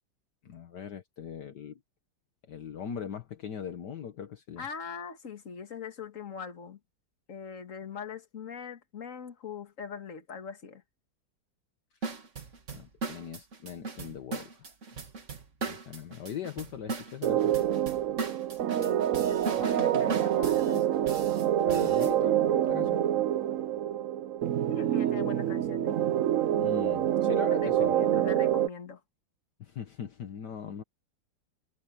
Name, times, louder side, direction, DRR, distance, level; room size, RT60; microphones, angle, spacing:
voice 1, 0.4-1.8 2.5-4.7 12.7-14.7 15.6-17.5 21.6-23.1 24.8-25.1 26.6-28.2 29.6-30.8, left 8 dB, 65° left, 1.8 m, -40 dB
voice 2, 4.6-6.8 7.3-10.8 18.8-21.0 24.7-26.0 27.6-29.0, left 6 dB, 45° left, 2.1 m, -41 dB
sound 1, 12.0-22.1, right 4 dB, 40° right, 2.1 m, -38 dB
sound 2, 17.2-28.7, right 11 dB, 65° right, 0.8 m, -26 dB
omnidirectional pair, 2.0 m